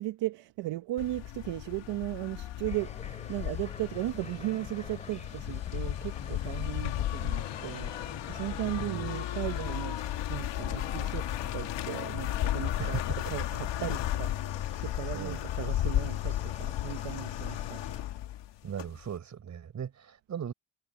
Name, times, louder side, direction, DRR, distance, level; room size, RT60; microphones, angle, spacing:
voice 1, 0.0-7.9 8.3-11.3 11.5-13.0 13.3-17.8, right 17 dB, 70° right, 1.1 m, -36 dB
sound 1, 1.0-19.1, left 13 dB, 70° left, 1.9 m, -34 dB
sound 2, 2.7-18.0, left 3 dB, 15° left, 3.9 m, -48 dB
voice 2, 8.5-9.1 12.8-13.2 15.1-15.4 18.6-20.5, right 8 dB, 40° right, 4.7 m, -38 dB
cardioid pair, 145°, 44 cm